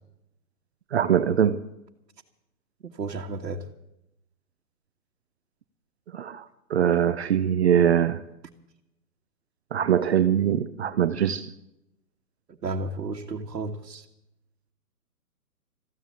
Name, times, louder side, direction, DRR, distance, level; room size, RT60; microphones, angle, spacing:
voice 1, 0.9-1.7 6.1-8.2 9.7-11.5, right 9 dB, 40° right, 0.7 m, -22 dB
voice 2, 2.8-3.7 12.5-14.0, right 3 dB, 85° right, 1.6 m, -33 dB
14.5 x 10.5 x 8.4 m
hypercardioid pair, 150°, 48 cm